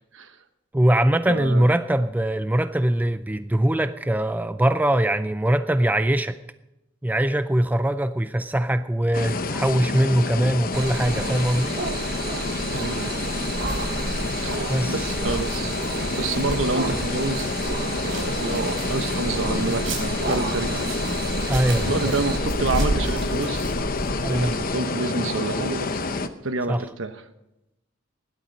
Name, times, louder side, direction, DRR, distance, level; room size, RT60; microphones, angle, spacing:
voice 1, 0.7-6.4 7.0-11.8 14.7-15.0 21.5-22.2 24.2-24.5 26.7-26.8, right 1 dB, 10° right, 11 dB, 0.4 m, -22 dB
voice 2, 1.3-1.7 12.7-13.1 14.4-14.5 14.9-15.7 16.2-17.5 18.0-20.9 21.7-23.7 24.3-25.9 26.4-27.1, right 3 dB, 70° right, 9 dB, 1.1 m, -28 dB
sound 1, 9.1-26.3, left 3 dB, 45° left, 0.8 m, -28 dB
sound 2, 10.7-22.4, right 4 dB, 55° right, 1.3 m, -32 dB
sound 3, 13.3-24.6, right 1 dB, 90° right, 3.9 m, -33 dB
17.0 x 11.5 x 5.3 m, 0.91 s
head